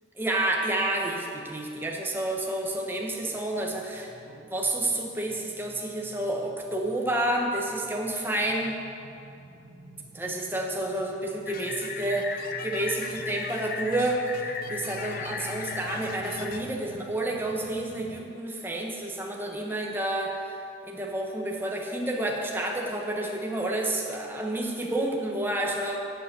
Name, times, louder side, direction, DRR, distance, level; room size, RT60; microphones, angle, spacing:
voice 1, 0.2-8.8 10.1-26.0, right 1 dB, 10° right, 0 dB, 1.1 m, -30 dB
sound 1, 0.9-18.2, left 1 dB, 60° right, 1.6 m, -49 dB
sound 2, 11.5-16.6, left 5 dB, 50° left, 0.6 m, -37 dB
8.5 x 7.0 x 8.2 m, 2.6 s
head